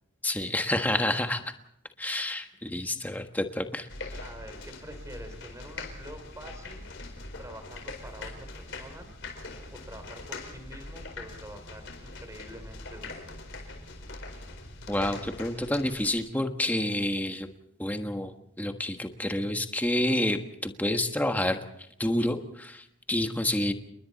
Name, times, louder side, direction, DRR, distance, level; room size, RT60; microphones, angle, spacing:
voice 1, 0.2-1.4 2.0-3.9 14.9-17.5 17.8-18.3 18.6-21.6 22.0-23.7, left 1 dB, 10° left, 6 dB, 1.4 m, -28 dB
sound 1, 3.9-16.1, left 2 dB, 55° left, 4.5 m, -42 dB
voice 2, 4.2-6.9 7.4-9.2 9.7-13.3, equal, 15° right, 7 dB, 3.1 m, -46 dB
29.5 x 21.5 x 4.1 m, 0.74 s
head